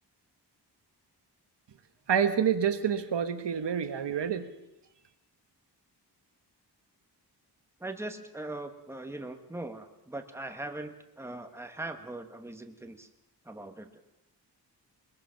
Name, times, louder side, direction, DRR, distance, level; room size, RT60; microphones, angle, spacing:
voice 1, 2.1-4.5, right 8 dB, 90° right, 9 dB, 1.4 m, -27 dB
voice 2, 7.8-13.1 13.4-14.0, right 2 dB, 5° right, 6 dB, 1.3 m, -40 dB
22.0 x 21.0 x 5.8 m, 0.88 s
wide cardioid pair, 160°, 41 cm